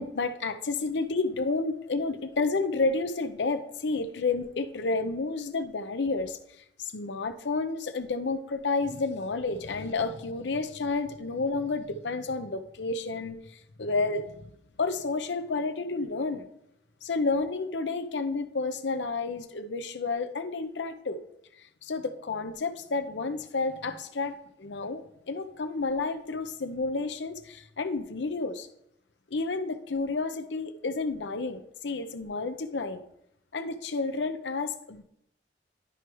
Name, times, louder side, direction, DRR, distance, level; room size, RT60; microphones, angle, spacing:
voice 1, 0.0-6.4 6.9-14.4 14.8-16.5 17.0-21.2 21.8-28.7 29.3-33.0 33.5-35.0, left 3 dB, 80° left, 9 dB, 0.7 m, -30 dB
11.5 x 4.7 x 3.0 m, 0.77 s
head